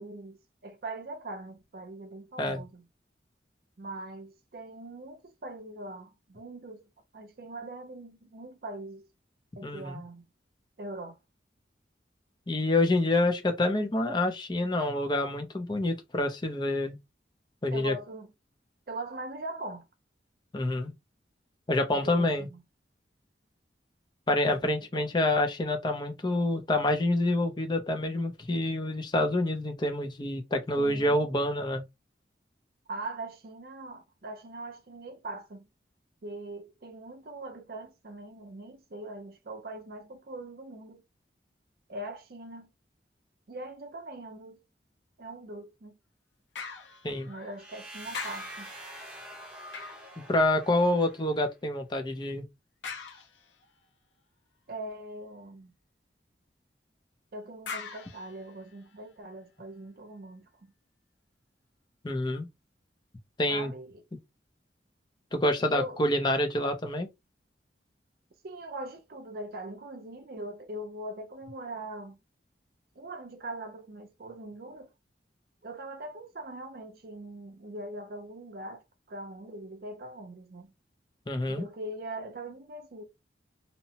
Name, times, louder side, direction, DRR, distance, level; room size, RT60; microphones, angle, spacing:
voice 1, 0.0-2.9 3.8-6.9 7.1-9.1 9.6-10.3 10.8-11.2 17.7-18.3 18.9-19.9 21.9-22.6 24.5-25.1 30.8-31.2 32.9-35.7 36.2-41.0 41.9-42.7 43.5-44.6 45.2-46.0 47.3-48.7 54.7-55.7 57.3-60.7 63.5-64.0 65.6-66.0 68.4-72.2 73.0-74.9 75.6-80.7 81.5-83.0, right 2 dB, 55° right, 0.5 m, -41 dB
voice 2, 9.6-10.0 12.5-17.0 17.6-17.9 20.5-20.9 21.7-22.5 24.3-31.8 47.0-47.3 50.2-52.4 62.0-62.5 63.4-63.7 65.3-67.1 81.3-81.7, left 1 dB, 25° left, 0.5 m, -27 dB
sound 1, 46.6-47.8 48.1-51.0 52.8-53.8 57.7-59.1 59.7-59.8, left 5 dB, 80° left, 0.6 m, -43 dB
sound 2, 47.6-51.4, right 1 dB, 5° right, 0.8 m, -45 dB
2.8 x 2.1 x 2.8 m
head